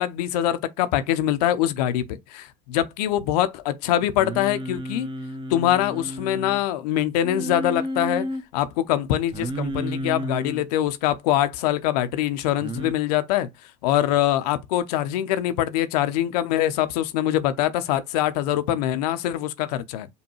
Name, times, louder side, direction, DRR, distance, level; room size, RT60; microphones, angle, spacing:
voice 1, 0.0-5.1 5.5-8.3 8.5-13.5 13.8-20.1, left 12 dB, 70° left, 0.5 m, -24 dB
Singing, 4.2-6.6 7.2-8.4 9.3-10.6 12.6-12.9, equal, 25° right, 0.7 m, -31 dB
5.3 x 2.2 x 3.0 m
hypercardioid pair, 75°, 20 cm